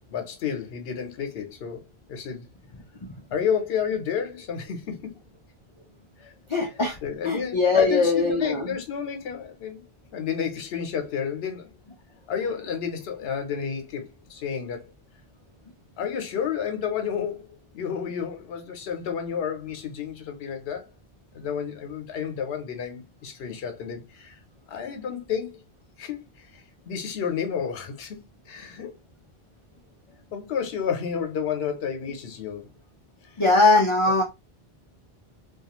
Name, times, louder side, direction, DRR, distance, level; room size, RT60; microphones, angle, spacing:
voice 1, 0.1-2.5 3.3-5.2 6.2-6.3 7.0-9.8 10.1-11.8 12.3-14.8 16.0-20.9 21.3-24.4 24.7-25.6 26.0-28.2 28.5-28.9 30.3-32.7, left 7 dB, 80° left, 0.9 m, -31 dB
voice 2, 6.5-7.0 7.2-8.7 33.4-34.2, left 3 dB, 50° left, 0.4 m, -20 dB
2.4 x 2.3 x 2.8 m
omnidirectional pair, 1.0 m